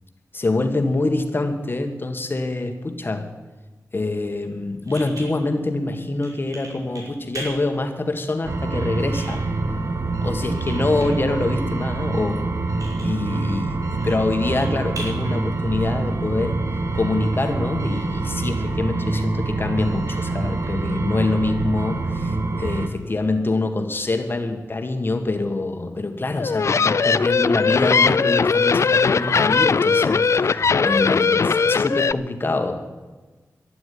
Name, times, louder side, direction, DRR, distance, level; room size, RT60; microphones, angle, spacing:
voice 1, 0.3-3.3 3.9-9.5 10.2-12.5 13.0-16.6 16.9-33.0, left 2 dB, 40° left, 6 dB, 1.8 m, -25 dB
sound 1, 4.2-16.3, right 2 dB, 90° right, 5.8 m, -42 dB
sound 2, 8.4-22.9, right 3 dB, 60° right, 1.7 m, -25 dB
sound 3, 26.4-32.1, left 5 dB, 55° left, 0.4 m, -19 dB
12.0 x 11.5 x 9.7 m, 1.3 s
wide cardioid pair, 100°, 6 cm